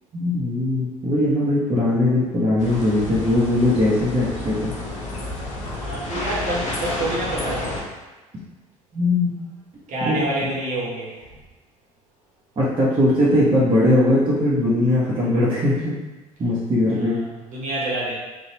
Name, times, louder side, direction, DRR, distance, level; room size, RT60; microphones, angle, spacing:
voice 1, 0.1-4.7 8.9-9.3 10.0-10.2 12.6-16.0 16.4-17.2, left 1 dB, 30° right, -8 dB, 1.0 m, -20 dB
sound 1, 2.6-7.8, left 2 dB, 40° left, 0.9 m, -30 dB
voice 2, 5.7-7.8 9.9-11.2 16.9-18.2, right 1 dB, 45° right, -6 dB, 1.2 m, -28 dB
4.0 x 2.4 x 2.9 m, 1.2 s
figure-of-eight pair, 60°, 18 cm